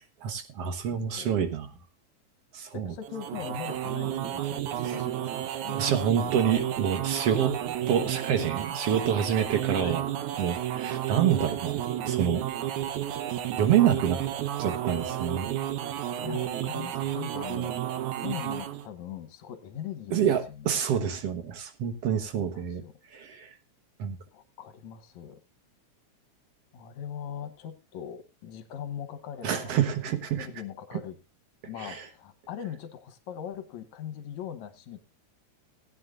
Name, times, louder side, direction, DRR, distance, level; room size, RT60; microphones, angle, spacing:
voice 1, 0.2-1.7 2.5-2.9 4.8-5.0 5.8-7.5 7.9-10.0 10.4-12.5 13.6-14.2 14.6-15.5 20.1-22.8 23.1-23.5 24.0-24.2 29.4-30.5 31.8-32.1, right 8 dB, 60° right, 8 dB, 2.1 m, -27 dB
voice 2, 2.7-5.8 9.7-10.0 16.2-17.7 18.2-20.7 22.4-22.9 24.3-25.4 26.7-29.8 30.3-31.2 31.7-35.0, left 9 dB, 75° left, 10 dB, 2.3 m, -40 dB
sound 1, 3.0-18.9, right 11 dB, 80° right, 2.3 m, -32 dB
18.5 x 9.5 x 2.5 m, 0.27 s
omnidirectional pair, 3.4 m